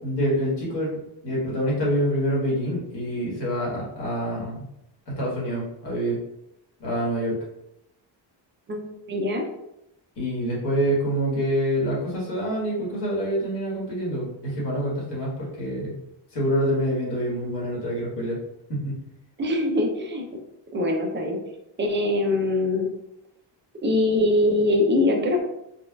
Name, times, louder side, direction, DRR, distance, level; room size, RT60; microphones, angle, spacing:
voice 1, 0.0-1.0 1.2-4.7 5.1-6.2 6.8-7.4 10.2-16.0 16.3-18.4 18.7-19.0, equal, 60° left, -5 dB, 1.5 m, -26 dB
voice 2, 8.7-9.4 19.4-20.3 20.7-21.4 21.8-22.9 23.8-25.4, left 2 dB, 25° right, 2 dB, 0.5 m, -23 dB
4.2 x 2.3 x 2.3 m, 0.83 s
wide cardioid pair, 170°, 45 cm